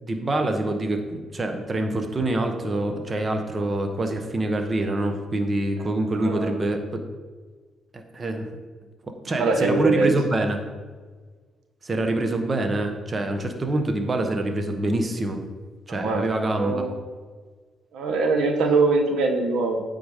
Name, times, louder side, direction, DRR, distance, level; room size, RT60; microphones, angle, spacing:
voice 1, 0.0-7.0 7.9-8.5 9.1-10.6 11.8-15.4 15.9-16.8, right 2 dB, 30° right, 5 dB, 0.9 m, -25 dB
voice 2, 5.8-6.6 9.4-10.2 15.9-16.9 17.9-19.8, right 3 dB, 80° right, 4 dB, 0.9 m, -23 dB
8.5 x 3.9 x 5.0 m, 1.5 s
cardioid pair, 90°, 0 cm